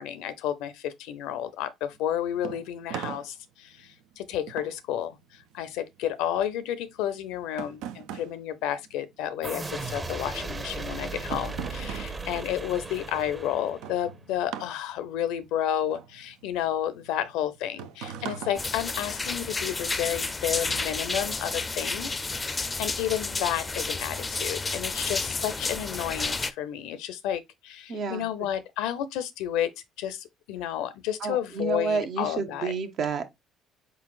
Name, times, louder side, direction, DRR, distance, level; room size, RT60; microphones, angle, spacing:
voice 1, 0.0-22.3 22.8-29.7 30.0-32.7, left 11 dB, 75° left, 0.5 m, -31 dB
sound 1, 1.9-9.6 9.9-19.5, right 9 dB, 75° right, 0.4 m, -42 dB
sound 2, 9.4-14.1, right 3 dB, 25° right, 0.8 m, -36 dB
sound 3, 18.6-26.5, left 3 dB, 25° left, 0.5 m, -31 dB
voice 2, 27.9-28.3 31.2-33.3, right 5 dB, 55° right, 0.8 m, -30 dB
4.5 x 3.9 x 2.3 m
hypercardioid pair, 60°, 0 cm